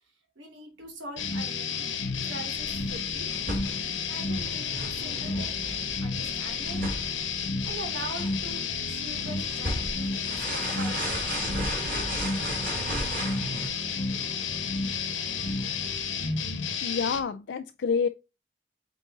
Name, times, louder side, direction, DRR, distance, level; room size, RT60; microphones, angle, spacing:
voice 1, 0.4-3.3 4.1-5.5 6.0-6.8 7.6-11.2, right 1 dB, 85° right, 2.8 m, -42 dB
sound 1, 1.2-17.2, left 5 dB, 85° left, 1.3 m, -31 dB
sound 2, 2.5-13.7, right 1 dB, 50° right, 3.0 m, -36 dB
sound 3, 9.1-16.0, right 1 dB, 20° right, 3.1 m, -49 dB
voice 2, 16.8-18.1, left 5 dB, 65° left, 0.4 m, -28 dB
8.3 x 3.8 x 4.0 m
head